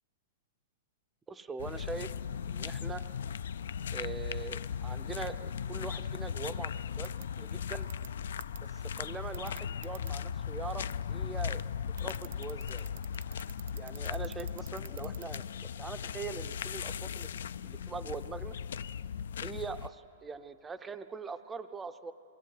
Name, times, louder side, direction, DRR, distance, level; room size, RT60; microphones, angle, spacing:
voice 1, 1.3-2.1 2.5-3.0 3.9-7.1 7.4-7.9 8.6-11.6 12.0-12.9 13.8-17.3 17.6-18.6 19.4-22.1, right 5 dB, 10° right, 10 dB, 0.5 m, -42 dB
sound 1, 1.6-19.9, left 8 dB, 75° left, 0.4 m, -38 dB
sound 2, 7.0-7.2 7.9-8.1 8.4-8.6 9.3-10.1 12.0-15.4, right 11 dB, 60° right, 0.7 m, -47 dB
21.5 x 17.0 x 9.6 m, 2.9 s
hypercardioid pair, 170°, 0 cm